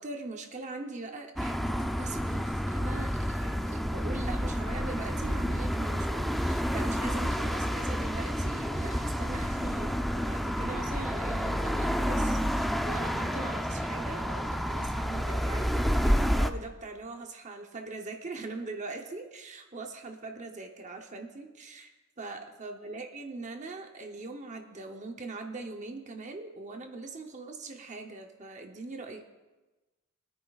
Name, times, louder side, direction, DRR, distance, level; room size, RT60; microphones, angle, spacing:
voice 1, 0.0-21.9 22.2-29.3, right 3 dB, 35° right, 4 dB, 0.8 m, -41 dB
sound 1, 1.4-16.5, equal, ahead, 0.4 m, -29 dB
23.5 x 9.7 x 2.4 m, 1.1 s
head